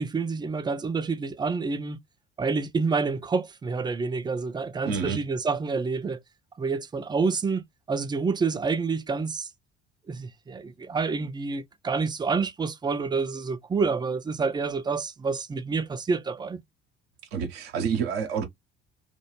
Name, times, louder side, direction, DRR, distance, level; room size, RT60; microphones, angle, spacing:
voice 1, 0.0-2.0 2.4-6.2 6.6-7.6 7.9-9.5 10.1-16.6, right 4 dB, 15° right, 0.4 m, -28 dB
voice 2, 4.8-5.2 17.3-18.4, right 6 dB, 70° right, 0.7 m, -28 dB
2.2 x 2.2 x 3.0 m
figure-of-eight pair, 50°, 32 cm